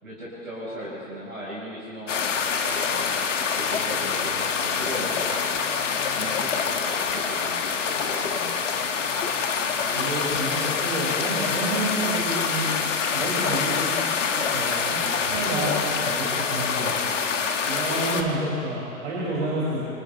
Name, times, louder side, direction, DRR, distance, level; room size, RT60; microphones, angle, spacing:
voice 1, 0.0-2.2 2.7-5.3 6.2-8.4, equal, 80° right, -7 dB, 5.5 m, -37 dB
sound 1, 2.1-18.2, left 6 dB, 60° left, 1.8 m, -26 dB
voice 2, 9.8-12.7 13.1-17.0 17.6-19.8, right 2 dB, 60° right, -8 dB, 6.5 m, -29 dB
28.0 x 27.0 x 3.5 m, 2.5 s
figure-of-eight pair, 105°, 41 cm